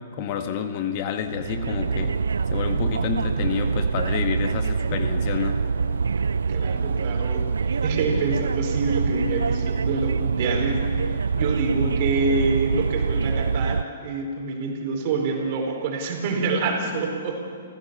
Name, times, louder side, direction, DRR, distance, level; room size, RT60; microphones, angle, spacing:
voice 1, 0.2-2.2 2.5-5.6, left 8 dB, 45° left, 7 dB, 1.7 m, -29 dB
sound 1, 1.2-13.8, right 5 dB, 85° right, 0.4 m, -25 dB
voice 2, 6.2-17.6, right 3 dB, 45° right, 2 dB, 4.5 m, -27 dB
28.5 x 15.0 x 6.9 m, 2.1 s
hypercardioid pair, 130°, 0 cm